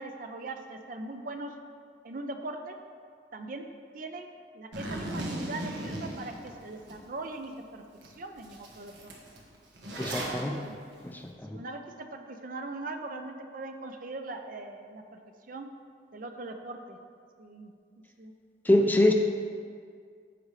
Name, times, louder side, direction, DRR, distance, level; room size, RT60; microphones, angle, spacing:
voice 1, 0.0-1.5 2.0-2.8 3.3-3.7 3.9-4.3 4.5-9.1 10.5-10.7 11.5-15.2 15.5-15.7 16.1-17.0 17.4-17.7 18.2-18.3 18.8-19.1, right 2 dB, 50° right, 6 dB, 0.6 m, -40 dB
Zipper (clothing), 4.7-7.0 7.4-7.5 8.0-8.1 8.4-10.4, right 1 dB, 85° right, 1.3 m, -37 dB
voice 2, 10.0-10.6 11.0-11.6 18.7-19.1, left 1 dB, 10° left, 3 dB, 0.5 m, -25 dB
14.5 x 5.0 x 3.2 m, 2.1 s
head